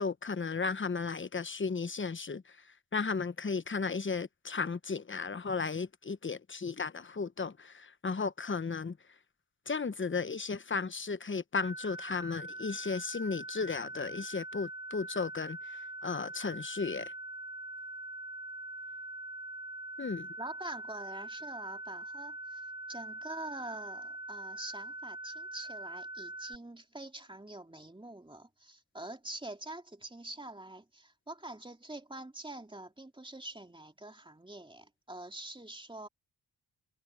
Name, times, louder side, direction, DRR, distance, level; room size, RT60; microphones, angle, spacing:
voice 1, 0.0-2.4 2.9-9.0 9.7-17.1 20.0-20.3, left 4 dB, 25° left, 1.0 m, -35 dB
sound 1, 11.6-26.6, right 1 dB, 40° right, 1.6 m, -43 dB
voice 2, 20.4-36.1, right 1 dB, 10° right, 2.8 m, -45 dB
cardioid pair, 75°, 44 cm